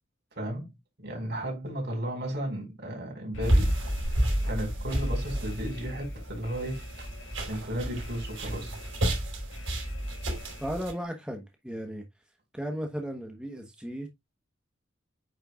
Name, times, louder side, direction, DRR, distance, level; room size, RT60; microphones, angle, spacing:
voice 1, 0.3-0.7 1.0-3.7 4.4-6.8 7.5-8.8, right 1 dB, 60° right, 4.7 m, -34 dB
Alarm, 3.3-11.0, left 1 dB, 75° left, 1.5 m, -42 dB
sound 1, 3.4-10.9, equal, 75° right, 4.7 m, -30 dB
voice 2, 10.6-12.1 12.5-14.1, equal, 5° right, 1.1 m, -35 dB
9.1 x 6.6 x 2.4 m
head